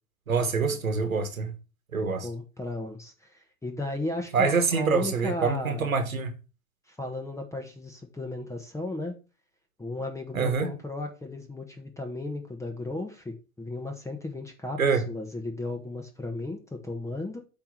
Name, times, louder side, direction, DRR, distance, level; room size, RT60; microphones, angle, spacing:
voice 1, 0.3-1.5 1.9-2.3 4.3-6.3 10.3-10.7 14.8-15.0, right 5 dB, 90° right, 1.4 m, -25 dB
voice 2, 1.9-5.9 6.9-9.1 9.8-17.4, left 2 dB, 5° left, 1.4 m, -35 dB
8.5 x 3.3 x 5.9 m
hypercardioid pair, 105°, 40 cm